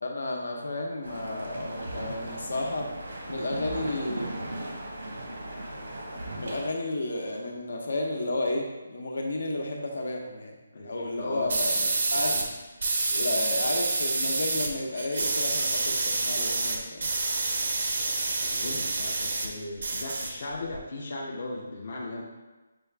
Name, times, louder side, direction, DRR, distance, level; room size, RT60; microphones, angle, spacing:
voice 1, 0.0-2.9 3.3-4.3 6.3-10.6 10.8-12.4 13.1-17.1, left 2 dB, 85° left, 0 dB, 0.8 m, -32 dB
sound 1, 1.0-6.7, right 1 dB, 80° right, 1.0 m, -37 dB
voice 2, 10.7-11.5 11.8-12.5 18.3-22.2, left 2 dB, 45° left, -2 dB, 0.5 m, -38 dB
sound 2, 11.5-12.5 12.8-14.7 15.0-19.5 19.8-20.8, right 3 dB, 50° right, 0.5 m, -28 dB
6.0 x 2.4 x 3.3 m, 1.2 s
hypercardioid pair, 175°, 0 cm